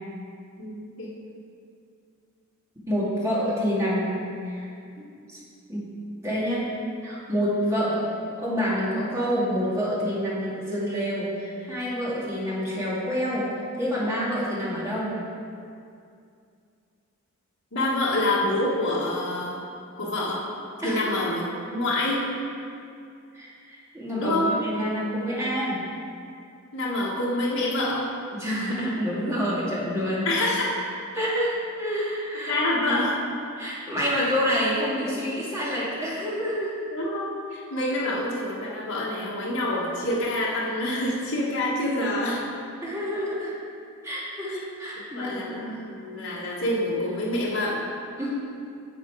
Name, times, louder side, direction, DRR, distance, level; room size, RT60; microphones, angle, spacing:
voice 1, 0.6-1.2 17.7-19.6 20.0-20.5 20.8-22.2 24.2-24.5 26.7-28.1 30.2-30.7 32.4-33.1 36.9-42.4 44.5-44.6 45.1-47.8, left 1 dB, 70° left, -6 dB, 1.6 m, -27 dB
voice 2, 2.9-4.7 5.0-5.4 5.7-5.9 6.2-6.7 7.0-13.5 13.8-15.2 20.8-21.1 23.3-25.8 28.3-30.3 31.1-32.5 32.9-33.0 33.6-36.8 42.8-43.5 44.0-45.9 48.2-48.3, equal, 15° right, -7 dB, 2.0 m, -28 dB
10.0 x 6.8 x 4.7 m, 2.4 s
head